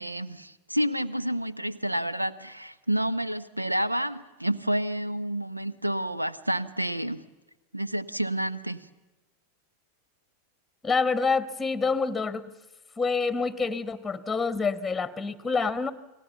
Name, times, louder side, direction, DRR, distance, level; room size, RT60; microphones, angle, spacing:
voice 1, 0.0-7.2 7.7-8.9, right 1 dB, 85° right, 16 dB, 0.8 m, -29 dB
voice 2, 10.8-12.4 13.0-15.9, left 4 dB, 10° left, 16 dB, 1.2 m, -27 dB
29.5 x 20.0 x 7.1 m, 1.1 s
figure-of-eight pair, 90°, 0 cm